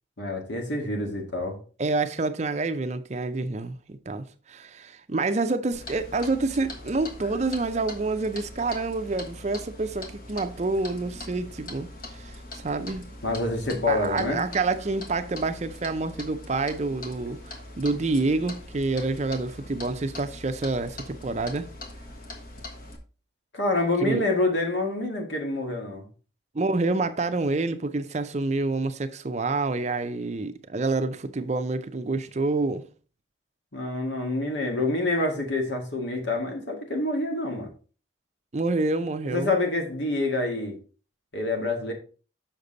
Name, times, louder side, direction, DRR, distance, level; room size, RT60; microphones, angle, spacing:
voice 1, 0.2-1.6 13.2-14.4 23.5-26.1 33.7-37.7 39.2-40.8 41.3-41.9, left 2 dB, 70° left, 2.0 m, -27 dB
voice 2, 1.8-13.1 13.9-21.7 24.0-24.2 26.5-32.9 38.5-39.5, right 3 dB, 35° right, 0.5 m, -28 dB
Clock, 5.7-23.0, left 2 dB, 45° left, 1.4 m, -42 dB
6.7 x 5.9 x 3.9 m
head